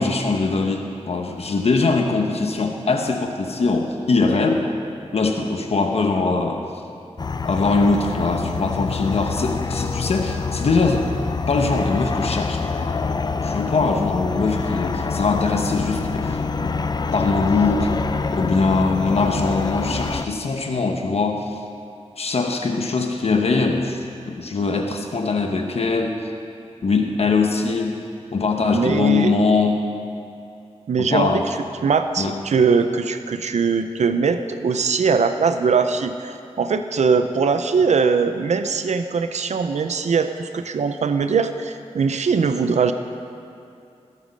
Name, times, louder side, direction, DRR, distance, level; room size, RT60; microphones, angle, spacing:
voice 1, 0.0-4.7 5.1-6.7 7.4-11.1 11.5-12.7 13.4-16.9 17.1-17.9 18.3-21.6 22.2-26.2 26.8-28.0 28.3-29.8 31.0-31.5 32.2-32.4, left 3 dB, 60° left, 3 dB, 1.0 m, -22 dB
sound 1, 7.2-20.3, left 4 dB, 35° left, 0.5 m, -26 dB
voice 2, 28.7-29.4 30.9-31.4 31.8-42.9, right 5 dB, 80° right, 9 dB, 0.6 m, -21 dB
20.5 x 8.5 x 5.4 m, 2.6 s
wide cardioid pair, 125°, 12 cm